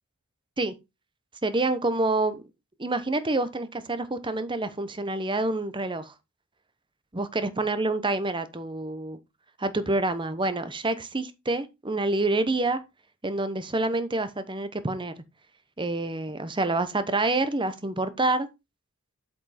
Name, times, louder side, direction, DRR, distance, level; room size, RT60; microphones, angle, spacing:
voice 1, 1.4-2.5 2.8-6.1 7.1-9.2 9.6-12.8 13.2-15.1 15.8-18.5, right 2 dB, 20° right, 0.9 m, -27 dB
8.6 x 5.4 x 4.2 m
head